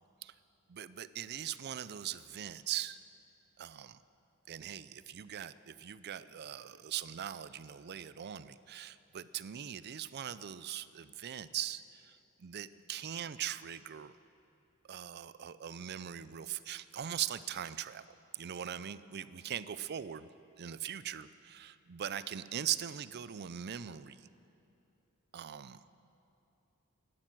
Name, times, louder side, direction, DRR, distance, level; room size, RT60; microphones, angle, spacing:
voice 1, 0.7-3.0 3.6-4.0 4.5-14.2 14.9-18.0 18.3-20.3 20.6-24.3 25.3-25.8, right 10 dB, 50° right, 15 dB, 0.4 m, -41 dB
17.0 x 12.0 x 6.1 m, 2.9 s
head